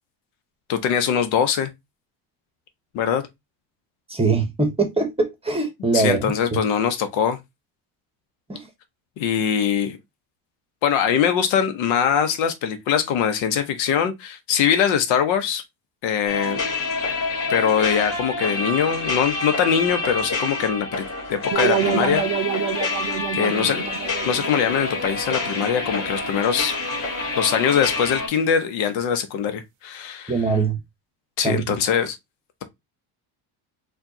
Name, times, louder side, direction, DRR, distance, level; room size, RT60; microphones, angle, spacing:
voice 1, 0.7-1.7 2.9-3.2 5.9-7.4 9.2-10.0 10.8-15.6 16.0-16.6 17.5-22.2 23.3-23.8 24.3-26.8 27.4-30.3 31.4-32.2, left 8 dB, 70° left, 0.9 m, -22 dB
voice 2, 4.1-6.3 8.5-8.7 30.3-30.8 31.4-31.7, right 3 dB, 10° right, 1.0 m, -22 dB
sound 1, 16.3-28.3, left 3 dB, 40° left, 2.2 m, -27 dB
sound 2, 21.5-26.4, right 11 dB, 70° right, 0.6 m, -28 dB
4.4 x 2.4 x 2.7 m
supercardioid pair, 110°, 48 cm